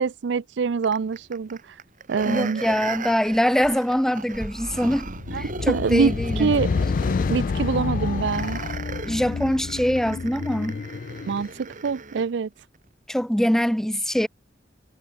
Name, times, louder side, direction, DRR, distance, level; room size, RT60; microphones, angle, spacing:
voice 1, 0.0-1.6 2.1-2.6 5.3-6.7 7.3-8.6 11.2-12.5, right 5 dB, 70° right, 0.4 m, -25 dB
sound 1, 0.8-12.3 12.7-12.8, right 4 dB, 45° right, 2.2 m, -37 dB
voice 2, 2.2-5.1 5.4-6.5 9.0-10.8 13.1-14.3, equal, 5° left, 0.6 m, -23 dB
sound 2, 5.1-11.5, left 4 dB, 50° left, 0.4 m, -28 dB
head